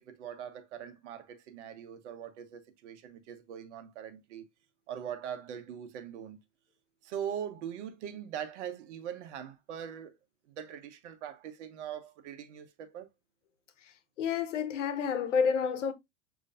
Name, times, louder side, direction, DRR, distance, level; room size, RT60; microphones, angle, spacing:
voice 1, 0.0-4.4 4.9-6.4 7.0-10.1 10.5-13.1, right 9 dB, 75° right, 1.1 m, -41 dB
voice 2, 14.2-15.9, left 6 dB, 85° left, 1.0 m, -29 dB
6.6 x 3.0 x 2.5 m
hypercardioid pair, 115°, 36 cm